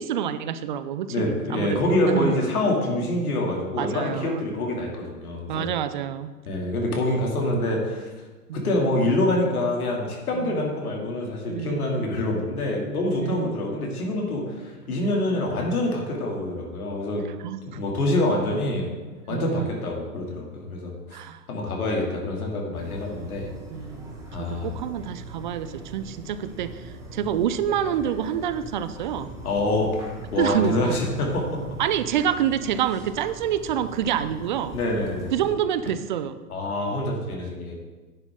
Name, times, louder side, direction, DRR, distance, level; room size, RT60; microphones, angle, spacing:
voice 1, 0.0-2.4 3.8-4.4 5.5-6.3 8.5-8.6 10.3-10.7 11.5-12.1 13.2-13.6 17.4-17.8 19.2-19.8 21.1-21.4 23.7-24.1 24.4-29.3 30.4-31.0 31.8-34.8 35.3-36.4, right 9 dB, 30° right, 13 dB, 0.5 m, -27 dB
voice 2, 1.1-5.7 6.5-8.1 8.5-17.3 17.7-18.9 19.3-20.9 21.5-23.5 24.3-24.7 29.4-30.1 30.3-31.6 34.7-35.3 36.5-37.7, left 1 dB, 65° left, -1 dB, 2.8 m, -26 dB
sound 1, 22.7-35.5, right 2 dB, 5° right, 1.8 m, -41 dB
10.5 x 9.7 x 3.7 m, 1.3 s
figure-of-eight pair, 115°, 48 cm